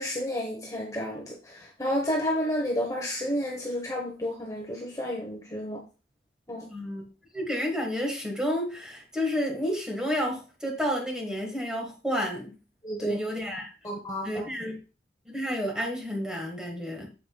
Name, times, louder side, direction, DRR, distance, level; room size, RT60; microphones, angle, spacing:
voice 1, 0.0-5.8 6.5-6.7 12.8-13.2 13.8-14.5, equal, 20° left, 0 dB, 1.1 m, -31 dB
voice 2, 6.7-7.0 7.3-12.6 13.0-13.7 14.2-14.8 15.2-17.1, equal, 5° right, 1 dB, 1.7 m, -30 dB
8.5 x 7.0 x 2.4 m, 0.34 s
head